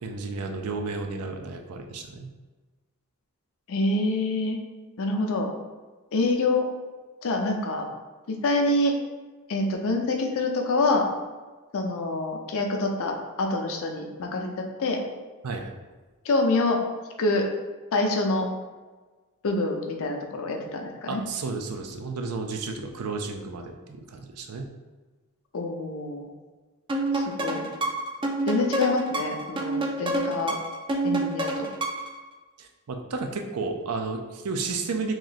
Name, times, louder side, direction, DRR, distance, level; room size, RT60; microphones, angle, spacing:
voice 1, 0.0-2.3 15.4-15.7 21.1-24.7 32.6-35.1, right 4 dB, 85° right, 4 dB, 0.5 m, -32 dB
voice 2, 3.7-4.6 5.0-5.5 6.1-6.7 7.2-7.9 8.3-8.9 9.5-11.1 11.7-14.5 14.8-15.0 16.2-16.8 17.2-17.5 17.9-18.5 19.4-21.2 25.5-26.3 27.1-27.7 28.5-30.6 31.0-31.7, left 2 dB, 65° left, 2 dB, 0.5 m, -26 dB
sound 1, 26.9-32.2, right 2 dB, 20° right, 0.3 m, -28 dB
3.1 x 2.6 x 3.9 m, 1.3 s
head